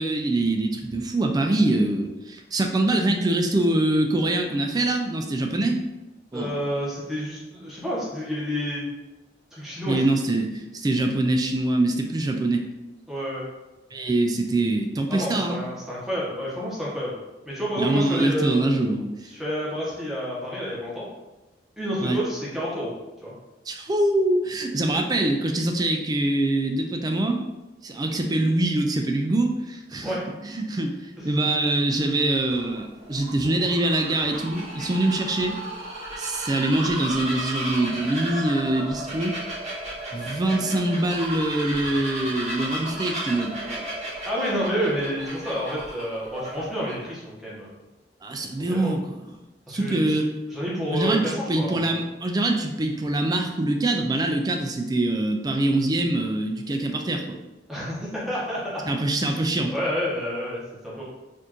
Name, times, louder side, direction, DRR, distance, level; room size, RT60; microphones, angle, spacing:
voice 1, 0.0-5.8 6.3-6.7 9.9-12.6 13.9-15.6 17.8-19.3 22.0-22.2 23.7-27.4 27.8-30.1 30.4-35.6 36.2-39.4 40.1-44.0 48.2-49.0 49.7-50.3 50.9-57.4 57.8-57.9 58.9-59.7, right 2 dB, 20° right, 4 dB, 0.3 m, -24 dB
voice 2, 6.3-8.9 9.5-10.1 13.1-13.4 15.1-17.1 17.5-18.7 19.3-21.1 21.8-22.9 23.2-23.3 30.0-30.6 31.2-31.3 44.2-47.7 48.7-48.9 49.7-50.2 50.5-51.9 57.7-58.9 59.2-59.3 59.7-61.0, equal, ahead, -7 dB, 1.0 m, -29 dB
Bird vocalization bird call bird song, 31.9-46.9, right 1 dB, 35° right, 1.2 m, -34 dB
4.3 x 2.6 x 2.9 m, 1.1 s
head